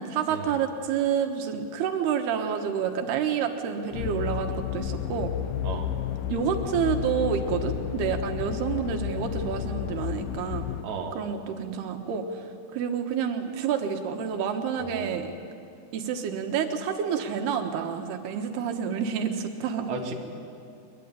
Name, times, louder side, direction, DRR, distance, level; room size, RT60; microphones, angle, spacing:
voice 1, 0.0-5.3 6.3-10.7 11.2-12.3 12.7-15.3 15.9-19.9, right 7 dB, 90° right, 5 dB, 3.5 m, -28 dB
sound 1, 3.9-10.8, left 11 dB, 75° left, 2.2 m, -32 dB
voice 2, 10.8-11.2 14.8-15.1 19.9-20.1, right 5 dB, 35° right, 1 dB, 2.7 m, -34 dB
23.0 x 22.0 x 9.9 m, 2.4 s
omnidirectional pair, 4.4 m